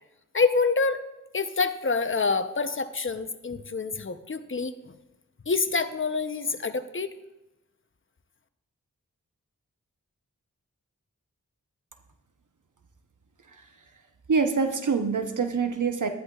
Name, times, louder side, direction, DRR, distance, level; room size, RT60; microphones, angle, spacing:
voice 1, 0.3-1.0 1.3-4.9 5.5-7.1, left 4 dB, 40° left, 10 dB, 0.7 m, -27 dB
voice 2, 14.3-16.1, right 5 dB, 65° right, 6 dB, 0.9 m, -25 dB
12.5 x 11.0 x 2.4 m, 0.98 s
cardioid pair, 40°, 33 cm